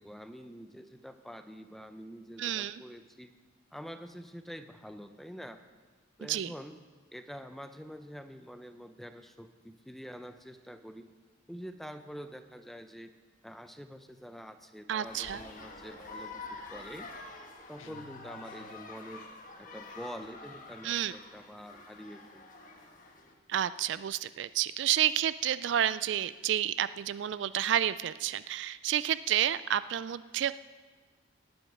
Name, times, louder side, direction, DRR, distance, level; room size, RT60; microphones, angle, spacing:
voice 1, 0.0-3.3 3.7-5.6 6.2-6.7 7.1-11.0 11.5-13.1 13.4-17.1 17.7-19.3 19.6-22.4, equal, ahead, 8 dB, 0.5 m, -46 dB
voice 2, 2.4-2.8 6.3-6.5 14.9-15.4 20.8-21.1 23.5-30.5, right 10 dB, 65° right, 16 dB, 0.3 m, -30 dB
sound 1, 15.0-23.3, left 3 dB, 40° left, 1.3 m, -47 dB
sound 2, 17.8-19.1, left 3 dB, 85° left, 0.7 m, -56 dB
18.5 x 7.9 x 5.4 m, 1.4 s
head